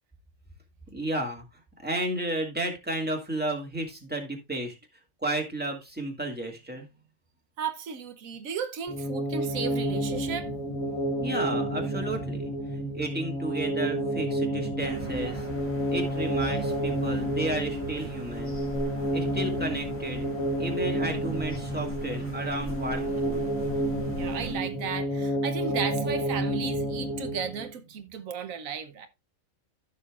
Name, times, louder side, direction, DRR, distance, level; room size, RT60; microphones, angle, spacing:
voice 1, 0.9-1.4 1.8-4.8 5.2-6.9 11.2-15.5 15.9-18.5 19.1-20.3 20.6-23.4, right 1 dB, 5° right, 2.0 m, -32 dB
voice 2, 7.6-10.5 24.1-29.1, right 7 dB, 85° right, 1.3 m, -34 dB
sound 1, 8.9-27.7, right 1 dB, 25° left, 3.3 m, -30 dB
sound 2, 14.8-24.5, right 1 dB, 10° left, 2.3 m, -41 dB
14.0 x 6.2 x 2.4 m
omnidirectional pair, 1.4 m